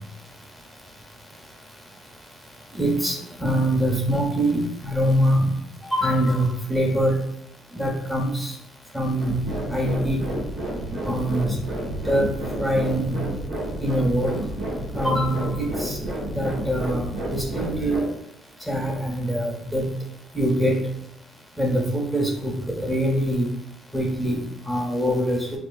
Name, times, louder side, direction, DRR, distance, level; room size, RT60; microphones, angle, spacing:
voice 1, 2.8-5.5 5.9-7.2 7.7-8.5 8.9-9.3 9.7-10.2 11.1-11.5 12.0-12.3 12.6-13.1 13.8-14.3 14.9-15.5 15.8-15.9 16.3-17.0 17.3-18.0 18.7-19.9 20.3-20.8 21.6-23.4 23.9-24.4 24.7-25.5, equal, 5° right, -2 dB, 1.2 m, -23 dB
sound 1, 9.2-18.0, right 1 dB, 75° right, 1.3 m, -30 dB
4.3 x 2.4 x 2.4 m, 0.76 s
cardioid pair, 110°, 0 cm